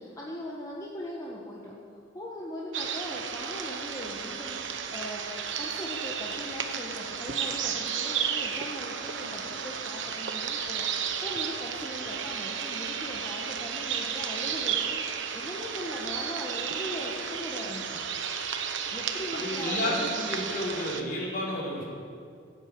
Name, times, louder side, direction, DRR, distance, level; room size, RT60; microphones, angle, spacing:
voice 1, 0.0-1.7 2.1-5.3 5.6-18.0 18.9-20.1, equal, 20° left, -4 dB, 1.5 m, -39 dB
sound 1, 2.7-21.0, right 7 dB, 70° right, 1.2 m, -33 dB
voice 2, 19.3-21.8, left 1 dB, 50° left, -5 dB, 4.6 m, -31 dB
16.0 x 9.3 x 8.6 m, 2.3 s
head